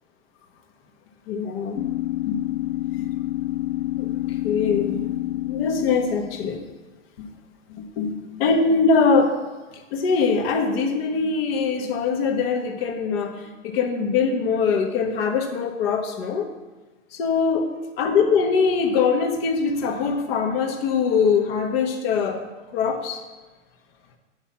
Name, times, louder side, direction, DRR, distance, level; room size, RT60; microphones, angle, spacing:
voice 1, 1.3-1.8 2.2-2.4 3.0-3.1 4.0-4.1 4.4-5.0 5.5-6.6 7.2-7.3 7.7-9.4 9.9-13.3 13.6-16.5 17.1-17.7 18.0-22.4 22.7-23.2, left 5 dB, 50° left, 5 dB, 1.5 m, -22 dB
sound 1, 1.7-6.8, left 15 dB, 80° left, 0.5 m, -28 dB
9.6 x 6.2 x 5.8 m, 1.3 s
hypercardioid pair, 125°, 39 cm